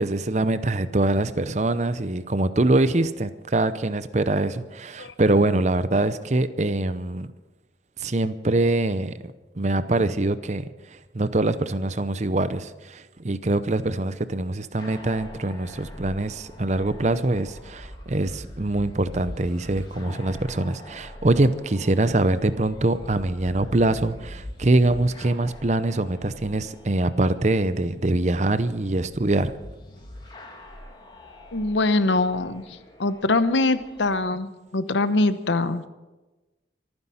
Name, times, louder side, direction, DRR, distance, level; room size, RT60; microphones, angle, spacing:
voice 1, 0.0-7.3 8.0-9.1 9.6-10.6 11.1-29.5, right 2 dB, 40° right, 13 dB, 0.7 m, -24 dB
sound 1, 14.8-34.2, left 1 dB, 25° left, 2.5 m, -43 dB
voice 2, 31.5-35.8, left 2 dB, 85° left, 12 dB, 0.9 m, -23 dB
24.5 x 9.8 x 5.8 m, 1.1 s
head